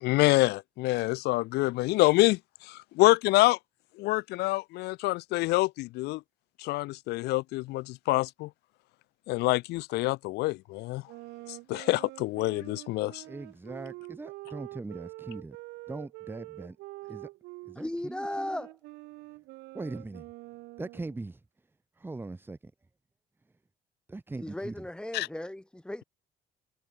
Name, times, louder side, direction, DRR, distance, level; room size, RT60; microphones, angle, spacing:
voice 1, 0.0-2.4 2.7-3.6 4.0-6.2 6.6-8.5 9.3-11.0 11.7-13.2 25.1-25.3, left 20 dB, 75° left, 0.4 m, -26 dB
sound 1, 11.1-17.8 18.2-21.2, right 21 dB, 90° right, 0.8 m, -46 dB
voice 2, 13.2-15.6 15.9-16.8 17.1-17.3 17.6-18.6 19.7-20.2 20.8-21.4 22.0-22.6 24.1-24.7, right 2 dB, 10° right, 1.1 m, -40 dB
voice 3, 17.7-18.8 24.4-26.0, left 1 dB, 5° left, 2.3 m, -36 dB
cardioid pair, 110°, 17 cm